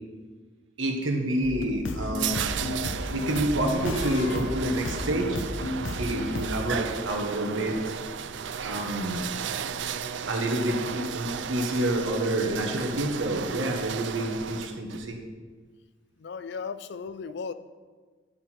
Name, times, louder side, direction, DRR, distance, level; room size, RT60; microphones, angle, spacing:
voice 1, 0.8-2.5 3.1-5.4 6.0-8.0 8.6-9.3 10.3-15.2, right 1 dB, 85° right, 2 dB, 1.4 m, -28 dB
sound 1, 1.4-6.6, left 2 dB, 80° left, 0.8 m, -33 dB
sound 2, 1.5-15.0, right 7 dB, 65° right, 0.4 m, -34 dB
voice 2, 16.2-17.5, left 5 dB, 60° left, 14 dB, 0.4 m, -36 dB
10.5 x 6.2 x 4.5 m, 1.4 s
head